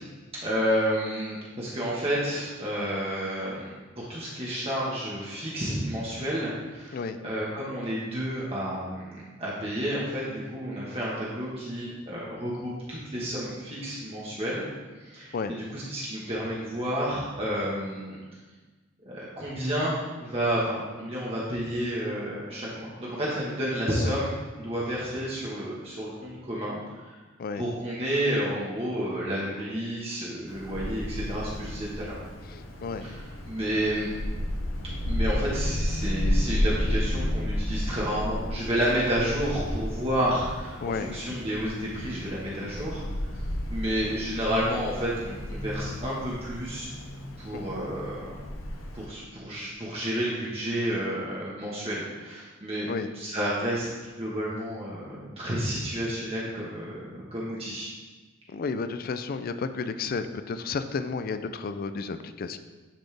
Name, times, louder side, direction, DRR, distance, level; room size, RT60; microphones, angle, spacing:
voice 1, 0.4-9.1 9.4-14.7 15.0-18.2 19.0-19.9 20.2-26.8 27.6-32.2 33.0-34.1 35.0-43.0 43.7-46.9 47.4-48.3 48.9-52.9 53.1-56.9 57.2-57.9, equal, 30° right, -7 dB, 1.2 m, -30 dB
Wind, 30.5-49.1, equal, 85° left, 0.9 m, -32 dB
voice 2, 32.5-33.1 40.8-41.2 47.5-47.7 52.9-53.1 58.5-62.6, left 4 dB, 45° left, 10 dB, 0.4 m, -32 dB
10.0 x 4.2 x 3.3 m, 1.3 s
head